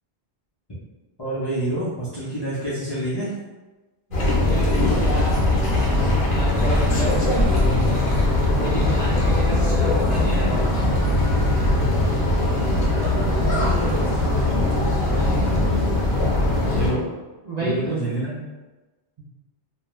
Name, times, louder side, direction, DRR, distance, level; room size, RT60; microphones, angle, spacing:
voice 1, 1.2-3.3 13.0-14.9 15.4-15.9 16.6-17.1 17.6-18.4, right 1 dB, 30° left, -10 dB, 0.5 m, -28 dB
sound 1, 4.1-16.9, left 1 dB, 55° left, 0.8 m, -20 dB
voice 2, 4.1-8.0 8.2-10.8 15.2-15.6 16.3-16.8 17.5-17.8 19.2-19.3, right 2 dB, 55° right, -8 dB, 0.5 m, -31 dB
2.4 x 2.2 x 3.0 m, 1.2 s
omnidirectional pair, 1.2 m